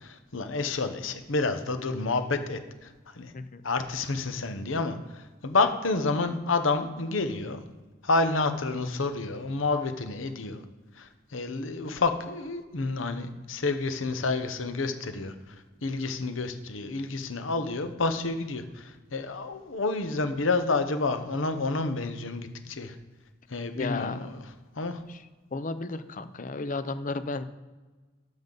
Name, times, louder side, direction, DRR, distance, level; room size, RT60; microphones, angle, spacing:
voice 1, 0.0-3.3 3.6-7.6 8.0-10.6 11.0-15.3 15.8-23.0 23.5-24.4 24.8-25.0, left 3 dB, 90° left, 9 dB, 0.9 m, -29 dB
voice 2, 23.7-24.3 25.1-25.2 25.5-27.4, left 3 dB, 40° left, 12 dB, 0.6 m, -33 dB
13.0 x 5.3 x 4.0 m, 1.3 s
head